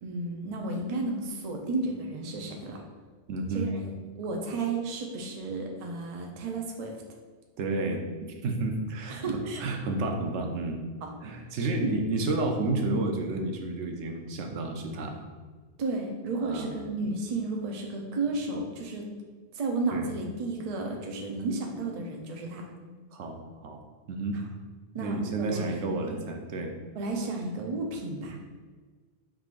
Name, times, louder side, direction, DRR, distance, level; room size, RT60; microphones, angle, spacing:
voice 1, 0.0-2.8 3.5-3.9 4.2-6.9 9.1-9.6 11.0-11.1 11.8-11.9 15.8-19.0 19.5-22.6 24.9-26.2 27.0-28.4, right 3 dB, 45° right, 1 dB, 0.5 m, -33 dB
voice 2, 3.3-3.7 7.6-10.8 11.2-15.3 16.4-16.7 19.9-20.1 23.1-23.8 24.1-24.4 25.0-26.7, right 2 dB, 80° right, 3 dB, 0.9 m, -31 dB
4.7 x 3.7 x 2.4 m, 1.5 s
omnidirectional pair, 1.2 m